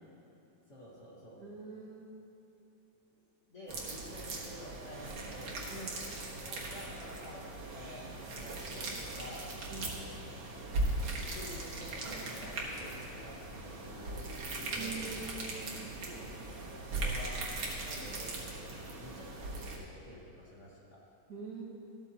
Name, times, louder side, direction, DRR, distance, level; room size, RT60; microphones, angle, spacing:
voice 1, 0.7-1.4 3.1-3.2 3.5-9.4 9.8-10.1 11.2-13.4 13.8-15.2 15.7-16.2 16.7-18.4 18.7-20.8, equal, 40° left, -6 dB, 1.9 m, -50 dB
voice 2, 1.4-2.1 5.7-5.9 9.7-10.0 14.7-15.7 21.3-21.6, right 4 dB, 55° right, -5 dB, 2.2 m, -44 dB
sound 1, 3.7-19.8, right 2 dB, 85° right, 2.3 m, -39 dB
sound 2, 9.0-17.7, left 3 dB, 75° left, 1.6 m, -55 dB
14.0 x 13.0 x 2.9 m, 2.8 s
omnidirectional pair, 2.2 m